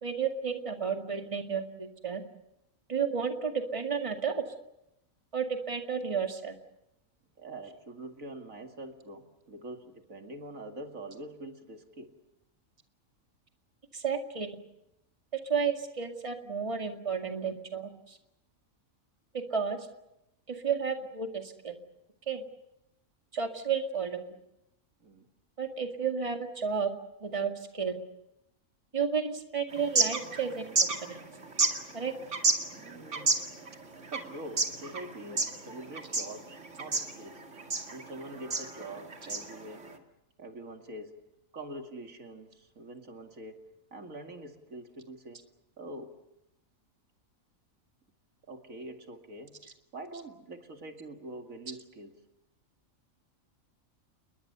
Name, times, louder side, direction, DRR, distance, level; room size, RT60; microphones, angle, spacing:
voice 1, 0.0-2.2 2.9-4.4 5.3-6.5 13.9-14.6 15.5-18.2 19.3-19.8 20.5-21.8 22.3-22.4 23.3-24.4 25.6-26.9 27.2-28.0 28.9-31.2 31.9-32.1, right 6 dB, 25° right, 4 dB, 2.1 m, -32 dB
voice 2, 7.4-12.1 25.0-25.3 32.7-33.4 34.1-37.4 37.9-39.9 40.4-41.3 41.5-43.7 43.9-45.4 45.8-46.2 48.5-52.1, right 1 dB, 80° right, 4 dB, 2.7 m, -44 dB
sound 1, 29.7-40.0, right 3 dB, 60° right, 2.5 m, -32 dB
29.5 x 21.5 x 6.9 m, 0.84 s
omnidirectional pair, 1.4 m